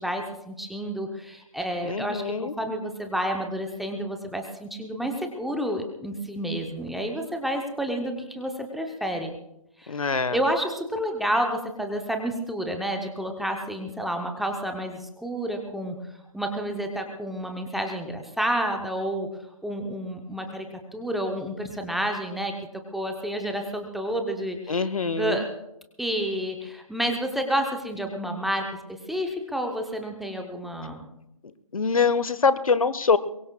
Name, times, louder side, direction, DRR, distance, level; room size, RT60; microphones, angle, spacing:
voice 1, 0.0-9.3 9.8-16.0 16.3-19.3 19.6-22.5 22.9-25.5 26.0-31.1, right 1 dB, ahead, 3 dB, 0.7 m, -30 dB
voice 2, 1.9-2.5 9.9-10.4 24.7-25.4 31.7-33.2, left 5 dB, 65° left, 15 dB, 1.1 m, -24 dB
23.0 x 23.0 x 2.3 m, 0.83 s
figure-of-eight pair, 150°, 19 cm